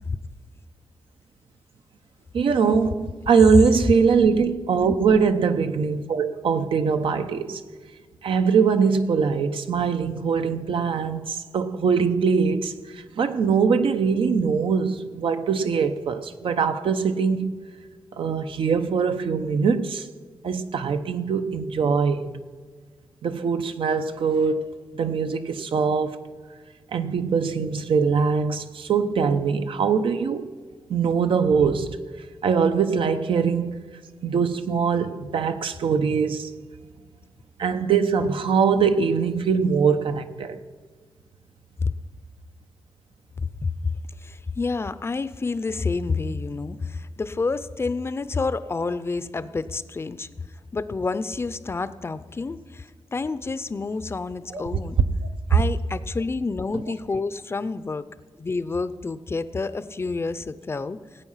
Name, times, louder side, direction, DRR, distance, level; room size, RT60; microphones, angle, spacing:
voice 1, 2.3-7.6 8.2-17.6 18.2-20.1 20.4-22.3 23.2-26.3 26.9-30.5 30.9-32.0 32.4-33.8 34.2-36.5 37.6-40.6 54.5-54.6 55.5-55.6, right 5 dB, 85° right, 0.8 m, -22 dB
voice 2, 43.4-43.9 44.2-50.3 50.7-55.0 55.5-58.0 58.4-61.0, left 4 dB, 30° left, 0.5 m, -29 dB
18.5 x 8.6 x 5.6 m
wide cardioid pair, 145°, 9 cm